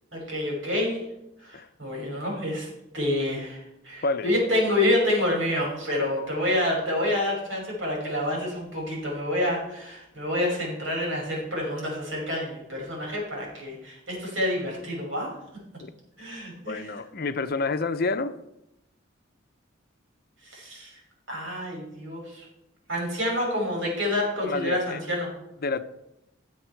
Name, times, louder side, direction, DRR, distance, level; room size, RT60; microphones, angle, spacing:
voice 1, 0.1-1.0 1.4-2.7 2.9-15.3 16.2-16.9 20.4-20.9 21.3-22.5 22.9-25.3, left 1 dB, 90° right, -2 dB, 5.8 m, -28 dB
voice 2, 16.7-18.3 24.4-25.0 25.6-25.8, left 3 dB, 50° left, 11 dB, 0.7 m, -28 dB
17.5 x 7.3 x 4.6 m, 0.88 s
head